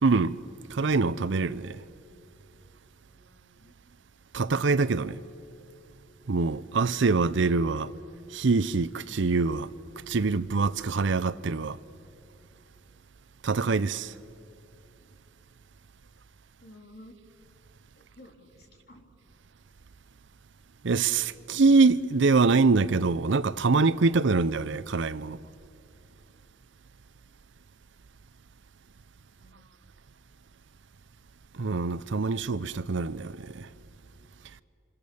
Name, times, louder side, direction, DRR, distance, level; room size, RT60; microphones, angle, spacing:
voice 1, 0.0-0.4 0.7-1.8 4.3-5.2 6.3-7.9 8.3-9.7 10.1-11.8 13.4-14.1 20.8-25.4 31.6-33.7, right 4 dB, 65° right, 0.6 m, -24 dB
voice 2, 3.0-3.7 16.6-17.2 18.0-19.1 29.4-29.6, left 1 dB, 50° left, 3.2 m, -53 dB
27.5 x 27.5 x 7.0 m
head